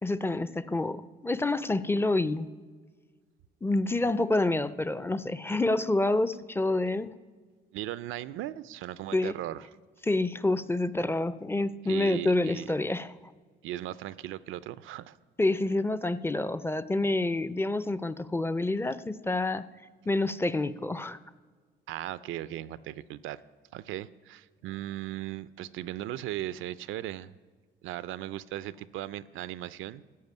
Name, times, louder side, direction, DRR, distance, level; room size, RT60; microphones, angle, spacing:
voice 1, 0.0-2.5 3.6-7.1 9.1-9.3 10.0-13.1 15.4-19.7 20.1-21.2, left 2 dB, 10° left, 15 dB, 0.4 m, -28 dB
voice 2, 7.7-9.7 11.8-12.7 13.6-15.2 21.9-23.4 23.7-27.3 27.8-30.0, right 13 dB, 85° right, 17 dB, 0.5 m, -37 dB
14.0 x 4.9 x 9.3 m, 1.5 s
cardioid pair, 90°, 20 cm